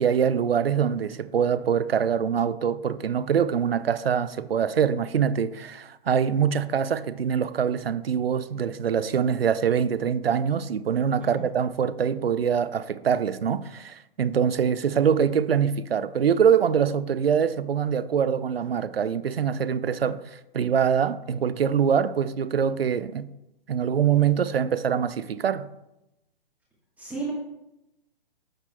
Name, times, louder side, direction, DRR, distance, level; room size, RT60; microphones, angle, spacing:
voice 1, 0.0-23.3 23.7-25.7, right 7 dB, 80° right, 0.5 m, -24 dB
voice 2, 27.0-27.3, right 4 dB, 5° right, 1.3 m, -33 dB
9.8 x 6.6 x 2.2 m
figure-of-eight pair, 125°, 29 cm